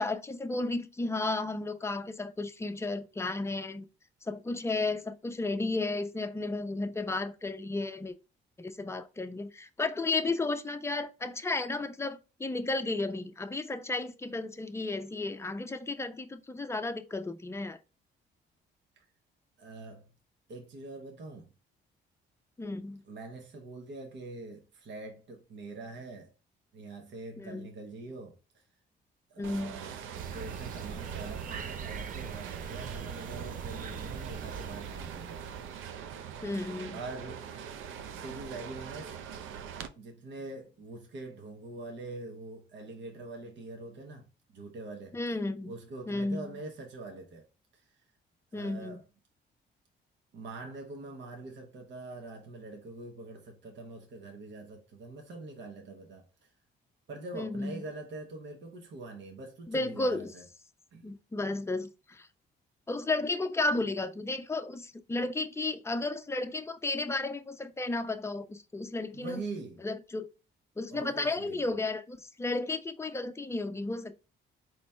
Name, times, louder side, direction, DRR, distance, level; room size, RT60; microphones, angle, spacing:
voice 1, 0.0-3.9 4.2-8.1 8.6-17.8 22.6-23.0 27.4-27.7 29.4-29.8 36.4-37.0 45.1-45.7 46.1-46.5 48.5-49.0 57.3-57.8 59.7-60.3 61.0-62.3 62.9-69.4 69.8-70.3 70.8-74.1, left 2 dB, 15° left, 0.5 m, -33 dB
voice 2, 19.6-20.1 20.5-21.5 23.0-26.3 26.7-28.6 29.3-30.0 30.3-35.4 36.9-37.4 38.2-39.2 39.9-44.2 44.5-45.1 45.6-47.5 47.7-48.0 48.5-49.0 50.3-56.5 57.1-60.5 60.9-61.1 69.1-69.8 70.9-71.7, right 2 dB, 65° right, 1.2 m, -44 dB
sound 1, 29.4-39.9, right 8 dB, 85° right, 0.6 m, -43 dB
sound 2, 30.1-35.9, right 7 dB, 45° right, 0.5 m, -41 dB
4.2 x 3.1 x 3.4 m
cardioid pair, 90°, 20 cm